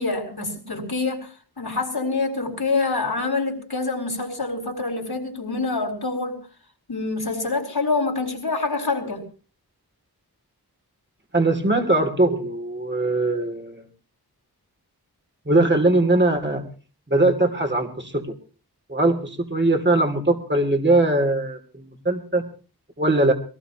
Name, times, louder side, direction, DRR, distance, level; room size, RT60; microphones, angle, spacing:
voice 1, 0.0-6.4 6.9-9.2, left 3 dB, 70° left, 2 dB, 4.3 m, -26 dB
voice 2, 11.3-13.9 15.5-16.6 17.1-18.3 18.9-22.4 23.0-23.3, right 2 dB, 30° right, 4 dB, 2.8 m, -21 dB
22.5 x 18.5 x 3.0 m, 0.38 s
wide cardioid pair, 50°, 39 cm